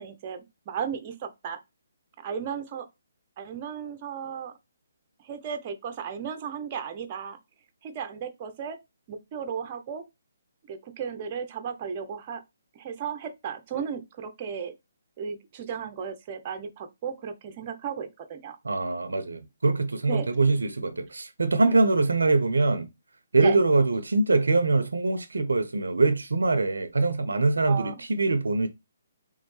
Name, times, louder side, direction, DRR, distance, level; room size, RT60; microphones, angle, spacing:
voice 1, 0.0-1.6 2.2-2.9 3.4-4.5 5.2-7.4 7.8-8.8 9.1-10.0 10.7-12.4 12.7-14.7 15.2-18.6 20.1-20.3 21.7-21.8 23.4-23.6 27.7-27.9, right 7 dB, 35° right, 0.7 m, -35 dB
voice 2, 18.6-22.9 23.3-28.7, right 3 dB, 80° right, 0.5 m, -23 dB
3.5 x 3.1 x 3.2 m
figure-of-eight pair, 140°, 0 cm